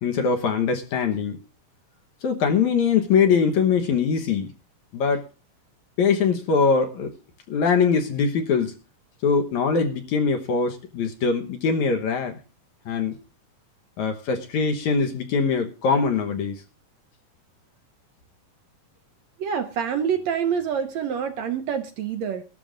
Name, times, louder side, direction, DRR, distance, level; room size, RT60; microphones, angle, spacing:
voice 1, 0.0-1.4 2.2-4.5 4.9-5.3 6.0-7.1 7.5-8.7 9.2-12.4 12.9-13.2 14.0-16.6, left 5 dB, 70° left, 2.3 m, -22 dB
voice 2, 19.4-22.4, right 7 dB, 70° right, 1.8 m, -26 dB
23.0 x 12.5 x 2.5 m
omnidirectional pair, 3.8 m